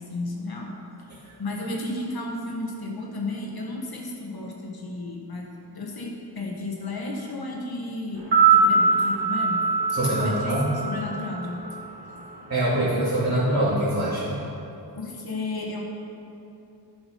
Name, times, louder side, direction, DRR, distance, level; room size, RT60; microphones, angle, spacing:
voice 1, 0.0-8.2 8.5-9.6 10.1-10.5 10.8-11.6 15.0-15.8, left 2 dB, 65° left, -1 dB, 1.4 m, -33 dB
sound 1, 8.2-12.3 12.6-12.7, right 4 dB, 70° right, 2.5 m, -23 dB
voice 2, 9.9-10.7 12.5-14.3, right 1 dB, 40° right, -12 dB, 2.5 m, -24 dB
11.0 x 6.1 x 5.3 m, 2.8 s
wide cardioid pair, 125°, 40 cm